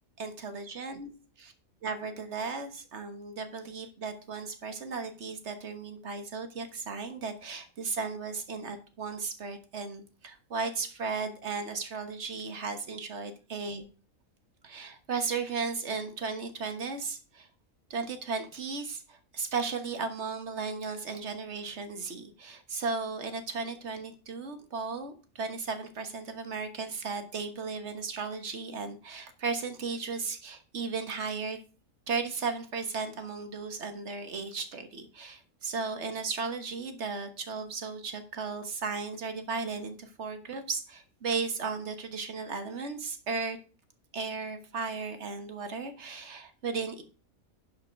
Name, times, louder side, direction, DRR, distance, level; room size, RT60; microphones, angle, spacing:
voice 1, 0.2-1.1 1.8-13.8 14.6-17.5 17.9-31.6 32.1-43.6 44.1-47.0, right 4 dB, 55° right, 8 dB, 1.5 m, -35 dB
11.0 x 5.2 x 5.2 m, 0.36 s
omnidirectional pair, 1.4 m